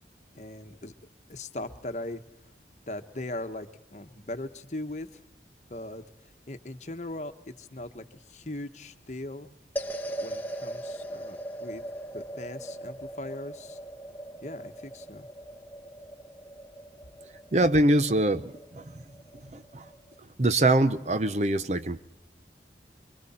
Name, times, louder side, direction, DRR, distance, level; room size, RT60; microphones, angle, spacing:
voice 1, 0.3-0.9 1.3-2.2 2.9-5.2 5.7-6.0 6.5-9.5 10.2-11.8 12.1-13.8 14.4-15.3, left 1 dB, 40° left, 8 dB, 1.2 m, -39 dB
sound 1, 9.8-20.2, right 1 dB, 10° left, 1.0 m, -40 dB
voice 2, 17.5-18.9 19.5-19.8 20.4-22.0, right 1 dB, 40° right, 11 dB, 0.7 m, -24 dB
25.5 x 24.0 x 4.3 m, 0.82 s
head